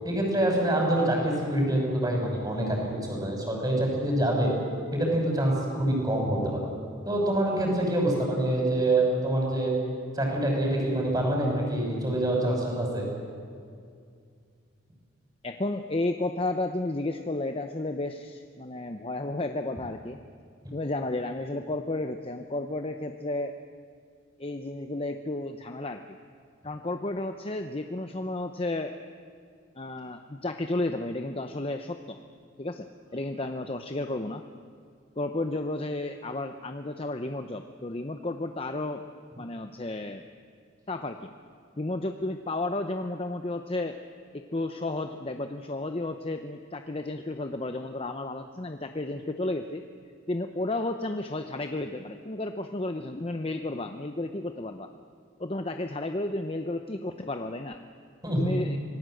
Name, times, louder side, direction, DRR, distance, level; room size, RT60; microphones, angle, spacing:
voice 1, 0.0-4.5 4.9-6.6 7.0-9.7 10.1-13.1 58.2-58.6, right 1 dB, 20° right, 0 dB, 6.1 m, -26 dB
voice 2, 15.4-20.2 20.7-23.5 24.4-26.0 26.6-28.9 29.8-32.2 32.6-34.4 35.2-39.0 39.4-40.2 40.9-41.3 41.8-44.0 44.3-49.8 50.3-54.9 55.4-57.8 58.4-58.8, left 2 dB, 30° left, 6 dB, 0.7 m, -32 dB
26.0 x 19.0 x 7.9 m, 2.3 s
head